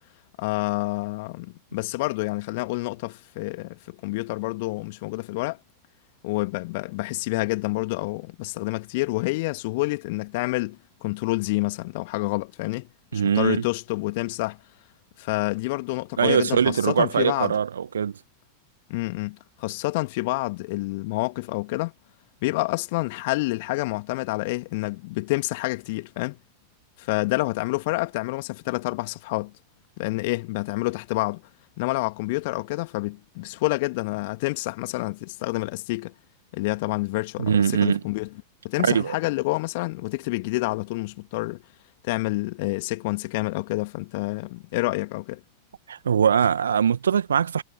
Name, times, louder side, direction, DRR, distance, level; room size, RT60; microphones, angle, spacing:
voice 1, 0.4-5.6 6.2-14.6 15.2-17.5 18.9-21.9 22.4-26.4 27.0-29.5 30.0-31.4 31.8-36.1 36.5-38.3 38.6-41.6 42.0-45.4, left 23 dB, 50° left, 2.4 m, -28 dB
voice 2, 13.1-13.6 16.2-18.2 37.4-38.0 38.8-39.2 45.9-47.6, right 7 dB, 70° right, 2.1 m, -22 dB
figure-of-eight pair, 90°, 0 cm